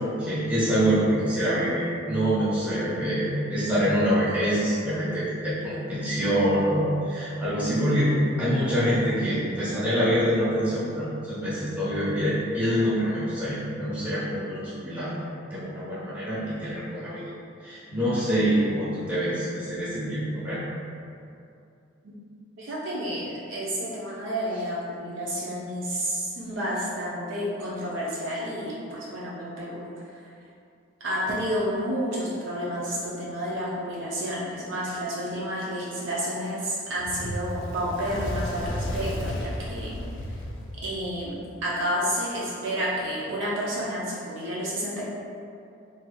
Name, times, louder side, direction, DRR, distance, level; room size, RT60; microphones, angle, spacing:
voice 1, 0.0-17.3 17.6-20.7, equal, 10° right, -12 dB, 1.2 m, -25 dB
voice 2, 22.6-29.9 31.0-39.9 40.8-45.0, equal, 70° right, -6 dB, 0.5 m, -30 dB
Fire, 37.0-41.5, left 1 dB, 75° left, 0.5 m, -33 dB
3.2 x 2.9 x 2.2 m, 2.5 s
head